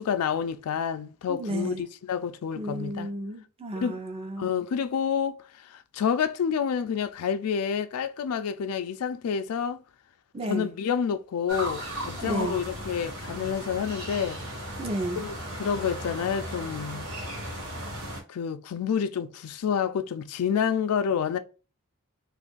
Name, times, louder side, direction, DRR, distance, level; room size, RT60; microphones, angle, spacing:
voice 1, 0.0-3.1 3.8-4.0 4.4-9.8 10.5-14.4 15.2-17.1 18.3-21.4, left 7 dB, 90° left, 0.4 m, -29 dB
voice 2, 1.3-1.8 2.6-4.5 10.3-10.7 12.2-12.6 14.8-15.2, right 1 dB, 25° right, 0.5 m, -32 dB
sound 1, 11.5-18.2, equal, 80° right, 1.1 m, -36 dB
2.6 x 2.4 x 3.7 m
head